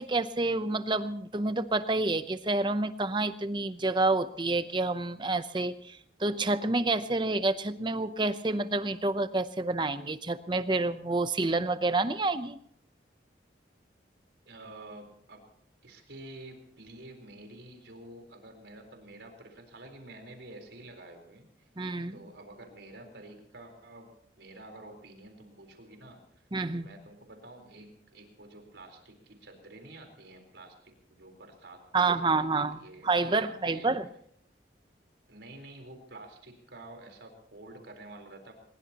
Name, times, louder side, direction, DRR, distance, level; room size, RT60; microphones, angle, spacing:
voice 1, 0.0-12.6 21.8-22.2 26.5-26.9 31.9-34.1, right 3 dB, 25° right, 12 dB, 0.7 m, -28 dB
voice 2, 14.5-15.4 15.8-21.7 22.1-24.1 24.4-26.2 26.7-33.9 35.3-38.5, right 2 dB, 75° right, 3 dB, 4.2 m, -49 dB
22.5 x 21.0 x 3.0 m, 0.65 s
head